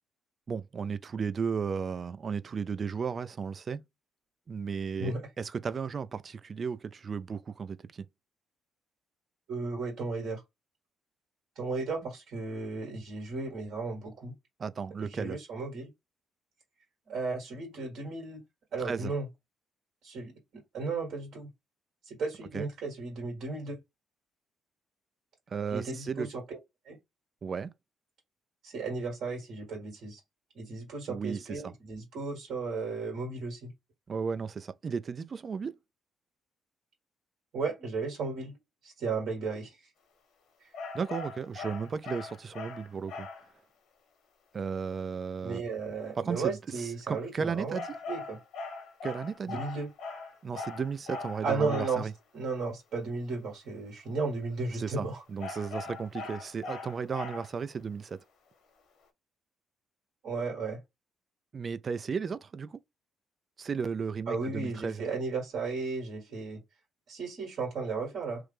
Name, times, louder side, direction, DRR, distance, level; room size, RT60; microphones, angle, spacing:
voice 1, 0.5-3.8 4.5-8.1 14.6-15.4 18.8-19.1 22.5-22.7 25.5-26.3 27.4-27.7 31.1-31.7 34.1-35.8 40.9-43.3 44.5-45.6 46.2-48.0 49.0-49.6 50.4-52.1 54.7-58.2 61.5-62.8 63.6-65.0, right 6 dB, 45° right, 0.3 m, -34 dB
voice 2, 9.5-10.4 11.5-14.3 15.0-15.9 17.1-18.4 18.7-19.3 20.0-20.3 20.7-21.5 22.0-23.8 25.7-26.6 26.8-27.0 28.6-30.2 30.5-33.7 37.5-38.6 38.8-39.8 45.4-47.8 48.1-48.4 49.5-49.9 51.4-52.1 52.3-55.2 60.2-60.8 64.3-66.6 67.1-68.4, right 4 dB, 70° right, 1.6 m, -34 dB
sound 1, 40.7-43.5 47.7-52.1 55.4-57.7, left 3 dB, 75° left, 0.9 m, -40 dB
3.0 x 2.1 x 3.3 m
supercardioid pair, 60°, 0 cm